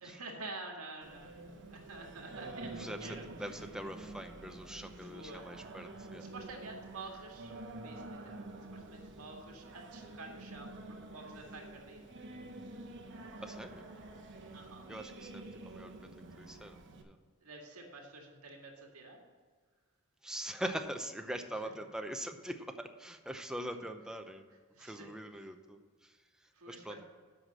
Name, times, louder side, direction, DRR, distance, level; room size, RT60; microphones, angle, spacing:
voice 1, 0.0-3.3 4.9-5.4 6.3-12.1 14.5-14.9 17.4-19.2 24.8-25.1 26.5-27.0, right 2 dB, 75° right, 1 dB, 1.9 m, -49 dB
Singing, 1.0-17.0, right 2 dB, 60° right, 1.1 m, -48 dB
voice 2, 2.8-6.3 13.4-13.9 14.9-16.1 16.4-17.2 20.2-24.5 24.8-27.0, right 1 dB, 5° right, 6 dB, 0.6 m, -43 dB
8.0 x 5.8 x 7.5 m, 1.5 s
head